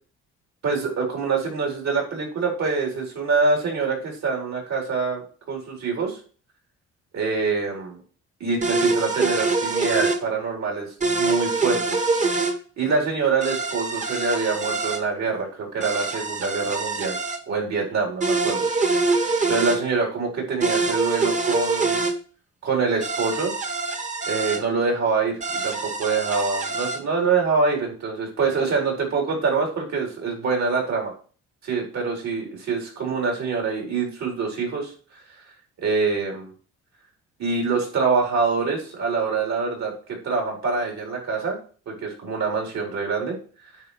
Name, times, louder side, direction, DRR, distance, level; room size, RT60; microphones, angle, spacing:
voice 1, 0.6-6.2 7.1-8.0 8.4-12.0 12.8-17.2 17.5-18.7 19.5-22.0 22.6-23.5 24.3-31.1 31.6-34.9 35.8-36.5 37.4-41.6 41.9-43.4, right 4 dB, 60° right, 0 dB, 4.3 m, -25 dB
sound 1, 8.6-10.2 11.0-12.5 13.4-15.0 15.8-17.4 18.2-19.8 20.6-22.1 23.0-24.6 25.4-27.0, right 3 dB, 25° right, 1.4 m, -24 dB
9.4 x 4.3 x 5.0 m, 0.40 s
cardioid pair, 90°, 30 cm